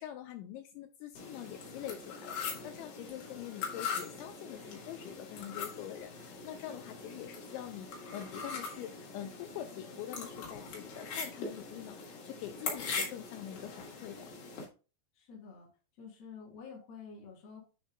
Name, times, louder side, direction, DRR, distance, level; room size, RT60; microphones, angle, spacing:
voice 1, 0.0-14.3, left 12 dB, 85° left, 7 dB, 2.6 m, -45 dB
sound 1, 1.2-14.7, left 5 dB, 60° left, 3.4 m, -42 dB
voice 2, 15.1-15.7 16.0-17.7, left 5 dB, 40° left, -4 dB, 3.4 m, -49 dB
10.0 x 5.3 x 2.2 m, 0.33 s
omnidirectional pair, 5.8 m